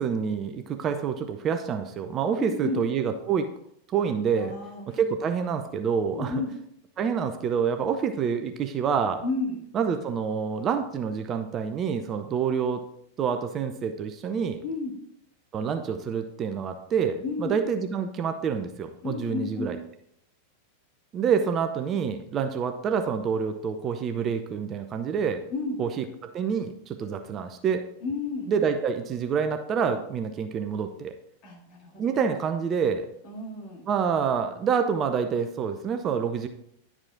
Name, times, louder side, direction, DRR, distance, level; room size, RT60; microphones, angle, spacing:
voice 1, 0.0-3.5 3.9-4.5 4.9-6.3 7.0-9.2 9.7-12.8 13.2-14.6 15.5-19.8 21.1-25.4 25.8-27.8 28.5-31.1 32.0-33.1 33.9-36.5, right 6 dB, 30° right, 7 dB, 0.6 m, -27 dB
voice 2, 2.4-2.8 4.4-5.0 6.1-6.6 9.2-9.6 14.6-15.0 17.2-17.6 19.0-19.8 25.5-25.8 28.0-28.5 31.4-32.4 33.2-33.8, left 3 dB, 40° left, -1 dB, 2.3 m, -32 dB
10.5 x 4.9 x 3.6 m, 0.73 s
figure-of-eight pair, 90°, 0 cm